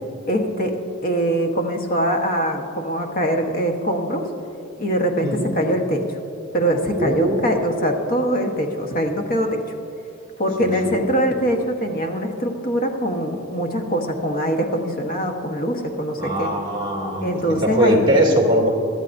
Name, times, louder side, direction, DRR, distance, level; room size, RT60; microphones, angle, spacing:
voice 1, 0.3-0.8 1.0-4.3 4.8-6.2 6.5-9.6 10.4-16.5 17.2-18.1, equal, 45° left, 3 dB, 1.2 m, -22 dB
voice 2, 6.9-7.5 10.6-11.0 16.2-18.7, equal, 25° right, -3 dB, 2.5 m, -21 dB
22.0 x 13.0 x 2.7 m, 2.7 s
head